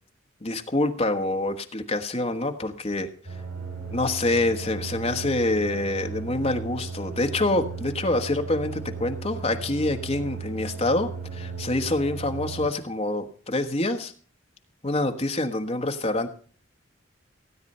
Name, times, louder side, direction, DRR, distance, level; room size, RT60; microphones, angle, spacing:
voice 1, 0.4-3.1 3.9-14.1 14.8-16.3, left 2 dB, 30° left, 6 dB, 1.2 m, -26 dB
sound 1, 3.2-12.7, right 5 dB, 75° right, 5.2 m, -36 dB
16.5 x 9.1 x 5.5 m, 0.43 s
head